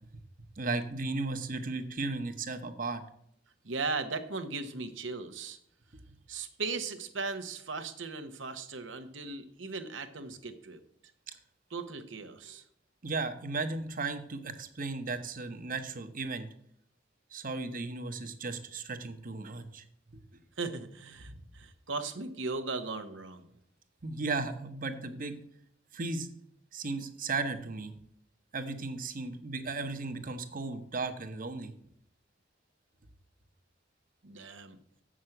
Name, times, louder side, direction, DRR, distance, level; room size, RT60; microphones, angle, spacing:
voice 1, 0.6-3.0 12.5-12.6 13.0-16.5 17.3-19.8 24.0-25.4 25.9-26.3 26.7-27.9 28.5-31.7, right 3 dB, 45° right, 8 dB, 1.0 m, -35 dB
voice 2, 3.6-5.6 6.3-10.8 11.7-12.6 20.6-23.5 34.2-34.8, right 4 dB, 90° right, 9 dB, 1.1 m, -37 dB
7.2 x 6.3 x 7.8 m, 0.70 s
head